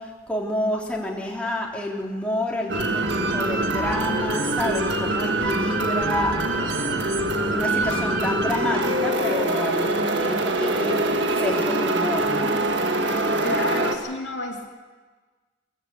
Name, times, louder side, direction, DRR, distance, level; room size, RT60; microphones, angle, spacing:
voice 1, 0.0-12.5, left 1 dB, 5° left, -3 dB, 3.0 m, -29 dB
sound 1, 2.7-14.0, right 2 dB, 65° right, 1.8 m, -24 dB
voice 2, 13.4-14.7, left 2 dB, 65° left, 1 dB, 2.6 m, -29 dB
21.0 x 14.5 x 8.4 m, 1.3 s
head